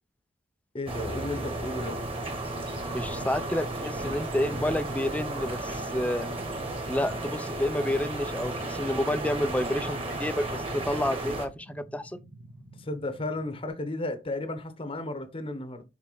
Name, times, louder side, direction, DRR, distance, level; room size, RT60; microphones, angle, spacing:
voice 1, 0.7-2.0 12.7-15.8, left 2 dB, 30° left, 0.9 m, -34 dB
sound 1, 0.9-11.5, right 2 dB, 30° right, 1.8 m, -34 dB
voice 2, 2.9-6.3 6.9-12.2, left 1 dB, 10° left, 0.4 m, -30 dB
sound 2, 4.7-13.7, right 1 dB, 85° right, 1.8 m, -51 dB
7.2 x 4.1 x 3.9 m
head